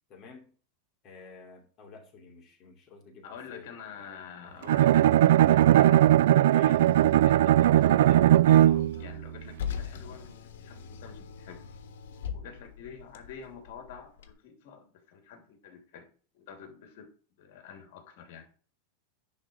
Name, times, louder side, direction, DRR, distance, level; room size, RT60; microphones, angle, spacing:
voice 1, 0.1-0.5 1.0-3.7 4.4-4.6 6.5-6.8, left 4 dB, 30° left, 2.7 m, -50 dB
voice 2, 3.2-6.8 7.2-11.7 12.3-16.1 16.3-18.5, left 7 dB, 60° left, 2.8 m, -47 dB
Bowed string instrument, 4.7-9.1, right 13 dB, 75° right, 0.3 m, -19 dB
Car, 6.6-14.3, left 8 dB, 85° left, 1.4 m, -42 dB
10.5 x 4.1 x 6.1 m
supercardioid pair, 160°, 0 cm